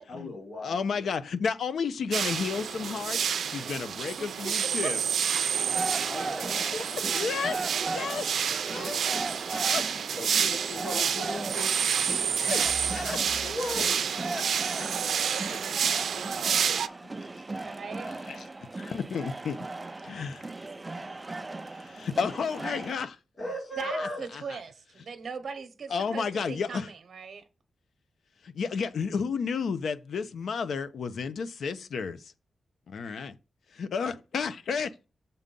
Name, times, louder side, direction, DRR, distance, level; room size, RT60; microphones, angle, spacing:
voice 1, 0.1-1.1 6.1-6.8 7.0-7.2 7.6-7.7 9.0-9.1 10.1-11.7 12.1-12.5 13.4-13.9 23.4-24.2, left 1 dB, 45° left, 3.7 m, -38 dB
voice 2, 0.6-3.2 3.4-5.0 6.7-7.6 7.9-8.3 8.7-9.3 9.5-9.9 12.4-12.6 12.9-13.2 13.6-13.8 14.3-14.4 15.3-15.6 18.2-18.5 18.8-19.6 20.1-20.4 21.7-23.2 23.8-24.6 25.9-26.9 28.4-32.3 32.9-33.4 33.7-34.9, left 5 dB, 75° left, 0.7 m, -32 dB
sound 1, 2.1-16.9, right 7 dB, 80° right, 0.5 m, -29 dB
voice 3, 4.2-4.7 17.6-18.1 23.8-27.4, right 5 dB, 55° right, 0.9 m, -40 dB
sound 2, 5.5-22.9, right 2 dB, 20° right, 0.4 m, -38 dB
sound 3, 11.7-14.0, equal, 15° left, 1.0 m, -45 dB
7.0 x 3.8 x 5.4 m
wide cardioid pair, 140°, 0 cm